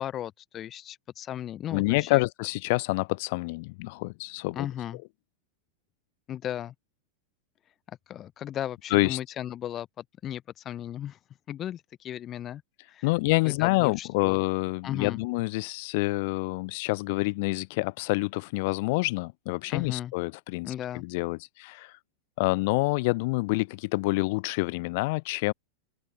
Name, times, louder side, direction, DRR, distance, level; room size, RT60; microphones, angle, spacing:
voice 1, 0.0-2.2 4.5-5.0 6.3-6.7 7.9-11.2 11.5-12.6 12.9-13.1 13.4-14.4 14.8-15.2 19.7-20.1 20.6-21.1, left 11 dB, 30° left, 5.6 m, -36 dB
voice 2, 1.7-4.7 8.9-9.2 13.0-21.9 22.4-25.5, left 25 dB, 50° left, 2.8 m, -27 dB
open air
figure-of-eight pair, 90°, 0 cm